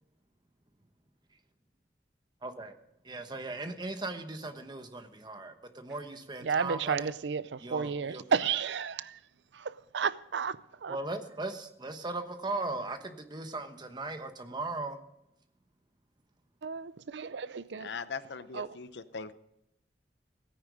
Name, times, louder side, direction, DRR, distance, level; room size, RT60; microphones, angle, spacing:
voice 1, 2.4-2.7 3.0-7.1 7.6-8.2 10.9-15.0, right 2 dB, 25° right, 1.1 m, -38 dB
voice 2, 6.4-9.2 9.5-11.0 16.6-17.9 18.5-18.8, right 6 dB, 85° right, 0.5 m, -32 dB
voice 3, 17.8-19.3, left 5 dB, 75° left, 0.7 m, -40 dB
16.5 x 9.6 x 5.2 m
head